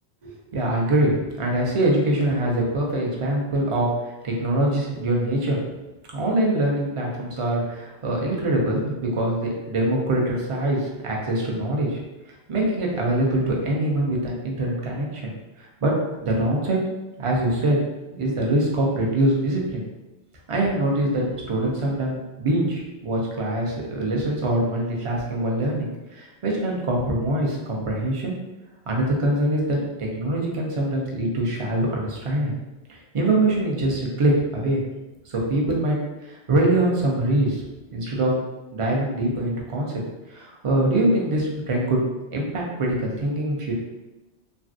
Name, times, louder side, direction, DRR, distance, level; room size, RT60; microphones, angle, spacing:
voice 1, 0.2-5.6 6.1-12.0 12.5-15.3 15.6-15.9 16.2-16.8 17.2-17.8 18.1-19.8 20.5-28.3 28.9-32.6 32.9-34.8 35.3-37.6 37.9-38.3 38.7-39.9 40.3-42.0 42.3-43.7, right 1 dB, 40° right, -2 dB, 0.5 m, -24 dB
3.2 x 2.5 x 2.5 m, 1.1 s
omnidirectional pair, 1.2 m